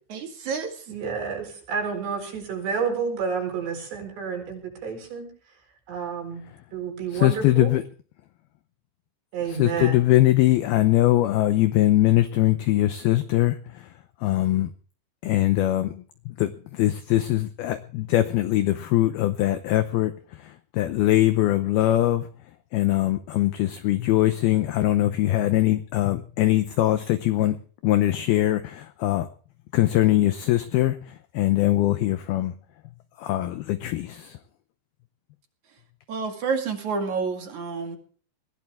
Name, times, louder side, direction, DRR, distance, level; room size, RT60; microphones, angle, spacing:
voice 1, 0.1-0.8 36.1-38.0, right 5 dB, 50° right, 2.9 m, -29 dB
voice 2, 0.9-5.3 5.9-6.4 6.7-7.7 9.3-9.9, right 6 dB, 65° right, 6.6 m, -30 dB
voice 3, 7.1-7.8 9.5-13.9 14.2-14.7 15.2-22.3 22.7-27.6 27.8-29.3 29.7-32.5 33.2-34.4, left 15 dB, 80° left, 2.2 m, -22 dB
21.5 x 15.5 x 3.6 m
omnidirectional pair, 5.4 m